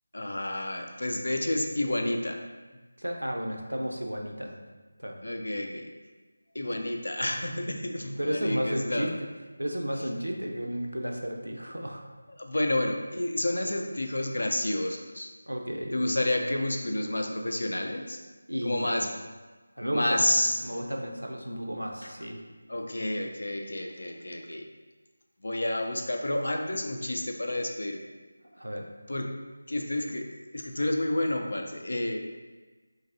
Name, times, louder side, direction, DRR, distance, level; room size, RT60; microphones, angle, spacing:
voice 1, 0.1-2.4 5.2-5.9 6.5-9.1 12.4-15.3 15.9-18.2 18.6-19.1 19.9-20.6 22.0-22.1 22.7-24.7 25.4-28.1 29.1-29.3 29.7-32.3, left 1 dB, 65° left, 3 dB, 0.4 m, -30 dB
voice 2, 3.0-4.6 5.0-5.2 8.2-9.1 9.6-12.0 15.5-15.9 18.5-19.0 19.8-20.2 20.6-22.4 28.5-28.9, equal, 85° right, 2 dB, 0.5 m, -33 dB
3.8 x 2.6 x 2.6 m, 1.3 s
figure-of-eight pair, 165°, 0 cm